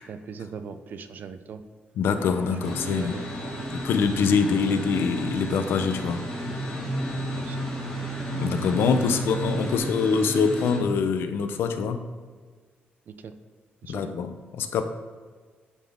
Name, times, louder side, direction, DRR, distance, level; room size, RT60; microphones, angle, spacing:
voice 1, 0.0-1.6 2.5-3.3 3.6-3.7 4.3-4.7 7.3-7.9 13.1-13.3 13.8-14.1, right 6 dB, 55° right, 10 dB, 0.5 m, -40 dB
voice 2, 2.0-3.1 3.7-6.2 8.3-12.0 13.9-14.8, left 5 dB, 80° left, 9 dB, 0.6 m, -24 dB
Engine, 2.2-9.8, left 1 dB, 60° left, 1.4 m, -41 dB
sound 1, 2.6-10.8, right 1 dB, 10° left, 1.9 m, -33 dB
11.5 x 4.2 x 3.6 m, 1.5 s
wide cardioid pair, 160°, 4 cm